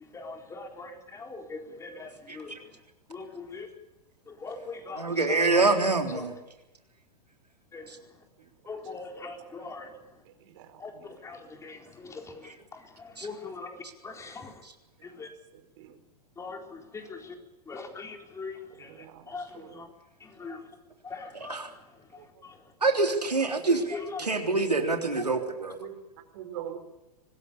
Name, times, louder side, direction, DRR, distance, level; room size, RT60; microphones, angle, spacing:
voice 1, 0.1-2.5 3.1-3.7 4.3-5.6 6.1-6.2 7.7-7.8 8.7-9.9 10.8-10.9 11.2-12.4 12.7-13.7 14.0-14.5 15.2-15.3 16.4-17.3 17.7-18.9 19.3-19.5 19.7-19.9 20.2-20.6 21.0-21.6 22.4-22.5 23.9-24.2, left 4 dB, 15° left, 4 dB, 4.2 m, -41 dB
voice 2, 2.3-2.6 4.9-6.3 7.9-8.0 12.4-12.5 13.2-13.3 14.6-14.7 21.3-21.7 22.8-25.8, right 3 dB, 85° right, 4 dB, 3.5 m, -26 dB
voice 3, 8.9-9.3 10.4-11.1 15.8-15.9 18.8-19.8 22.2-22.3 24.2-24.9 25.2-25.5 25.8-26.0 26.3-26.8, right 11 dB, 50° right, 9 dB, 4.4 m, -44 dB
25.0 x 20.0 x 7.0 m, 0.99 s
figure-of-eight pair, 105°, 20 cm